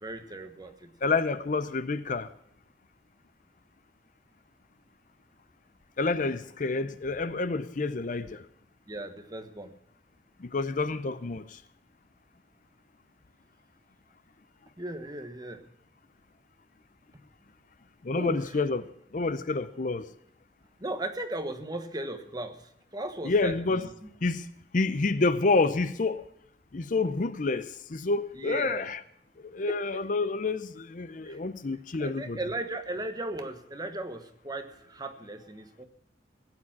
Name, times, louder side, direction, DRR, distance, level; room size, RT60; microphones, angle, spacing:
voice 1, 0.0-0.9 8.9-9.7 14.8-15.6 18.1-18.6 20.8-24.1 28.3-28.9 29.7-29.8 31.2-31.4 32.0-35.8, right 1 dB, 20° right, 1.3 m, -37 dB
voice 2, 1.0-2.3 6.0-8.4 10.4-11.4 18.0-20.1 23.2-23.9 24.2-24.4 24.7-26.2 26.7-29.0 29.5-32.4, left 3 dB, 45° left, 0.6 m, -28 dB
16.5 x 9.1 x 5.9 m
head